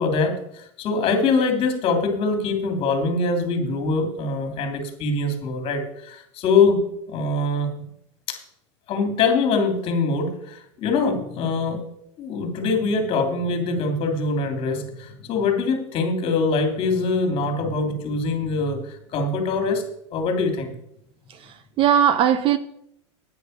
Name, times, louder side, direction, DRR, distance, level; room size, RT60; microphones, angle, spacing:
voice 1, 0.0-7.7 8.3-8.4 8.9-11.8 12.2-19.8 20.1-20.7, left 3 dB, 35° left, 3.0 m, -23 dB
voice 2, 21.3-22.6, right 9 dB, 35° right, 0.7 m, -19 dB
9.2 x 9.1 x 6.6 m
supercardioid pair, 135°, 16 cm